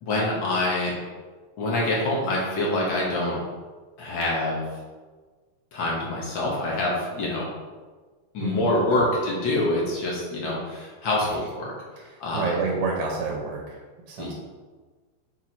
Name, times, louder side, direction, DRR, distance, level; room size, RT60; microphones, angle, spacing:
voice 1, 0.0-0.9 1.6-3.4 4.0-4.6 5.7-7.5 8.3-11.7 12.2-12.5 14.2-14.3, left 1 dB, 70° left, -4 dB, 1.1 m, -25 dB
voice 2, 8.4-8.8 12.3-13.8 14.1-14.3, right 4 dB, 85° right, -1 dB, 2.5 m, -28 dB
6.0 x 4.6 x 4.5 m, 1.4 s
omnidirectional pair, 4.0 m